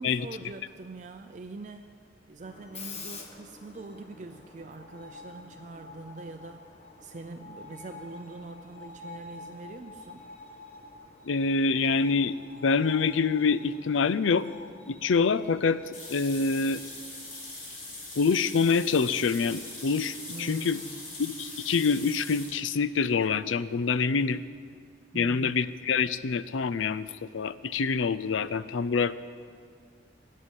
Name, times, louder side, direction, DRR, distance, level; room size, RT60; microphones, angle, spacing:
voice 1, 0.0-1.9 2.3-6.7 7.0-10.3 20.3-21.1 25.1-25.6, right 3 dB, 40° right, 6 dB, 0.5 m, -43 dB
Screech, 2.4-19.0, left 3 dB, 35° left, 1.2 m, -48 dB
voice 2, 11.2-14.5 14.9-16.8 18.2-20.8 21.2-24.4 25.1-29.2, left 5 dB, 90° left, 14 dB, 0.5 m, -26 dB
sound 1, 15.9-22.6, left 2 dB, 55° left, 4.0 m, -42 dB
13.0 x 7.5 x 9.9 m, 2.1 s
head